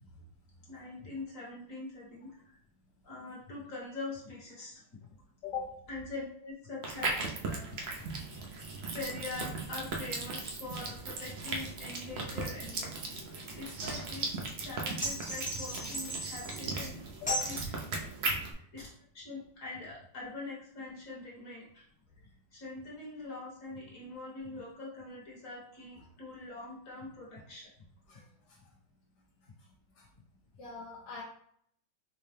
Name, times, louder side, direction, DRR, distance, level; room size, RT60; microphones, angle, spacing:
voice 1, 0.7-2.6 3.0-5.1 5.9-7.2 7.4-7.8 8.9-12.9 13.2-17.0 17.4-17.8 18.5-18.9 19.1-21.9 22.5-27.7, left 3 dB, 50° left, -5 dB, 1.5 m, -43 dB
sound 1, 6.8-18.5, right 3 dB, 75° right, 0.5 m, -37 dB
voice 2, 8.3-8.9 17.3-17.5 28.1-28.2 30.0-30.1 30.6-31.2, left 6 dB, 70° left, -4 dB, 1.3 m, -40 dB
sound 2, 15.0-16.7 17.3-17.6, right 1 dB, 10° left, 0.4 m, -36 dB
4.6 x 2.2 x 3.2 m, 0.65 s
omnidirectional pair, 1.9 m